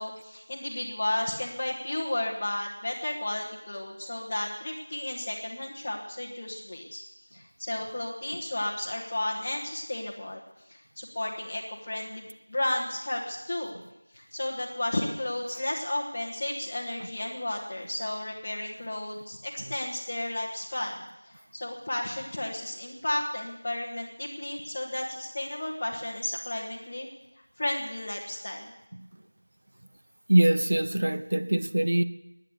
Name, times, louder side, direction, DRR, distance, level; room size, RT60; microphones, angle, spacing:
voice 1, 0.0-7.0 7.3-10.4 10.7-13.7 14.1-27.1 27.6-28.6, left 1 dB, 20° left, 1.4 m, -33 dB
voice 2, 30.3-32.0, right 1 dB, 45° right, 0.6 m, -23 dB
16.0 x 10.0 x 8.2 m
figure-of-eight pair, 175°, 0 cm